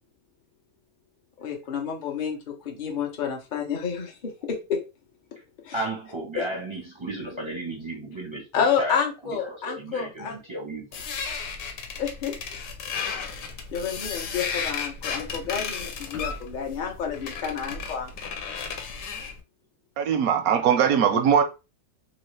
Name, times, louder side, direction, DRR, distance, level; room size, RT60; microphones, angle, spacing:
voice 1, 1.4-4.2 4.7-4.8 5.7-5.8 8.5-10.4 12.0-12.3 13.2-13.4 13.7-18.1, left 7 dB, 45° left, 0.6 m, -29 dB
voice 2, 5.7-8.5 8.8-9.0 9.4-10.9 20.5-20.7, right 1 dB, 30° right, 0.5 m, -34 dB
sound 1, 10.9-19.4, left 5 dB, 75° left, 1.2 m, -34 dB
voice 3, 20.0-21.4, right 8 dB, 70° right, 0.9 m, -20 dB
3.1 x 3.0 x 3.2 m
omnidirectional pair, 1.8 m